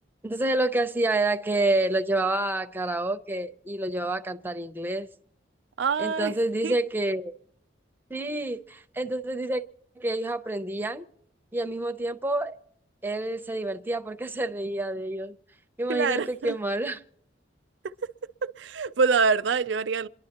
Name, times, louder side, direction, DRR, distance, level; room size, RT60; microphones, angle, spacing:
voice 1, 0.2-5.1 6.0-7.3 8.1-9.6 10.0-11.0 11.5-12.6 13.0-15.4 15.8-17.0, right 2 dB, 10° right, 0.6 m, -28 dB
voice 2, 5.8-6.4 6.6-6.8 15.9-16.6 17.8-17.9 18.4-20.1, right 5 dB, 70° right, 0.5 m, -25 dB
27.5 x 11.0 x 2.9 m
head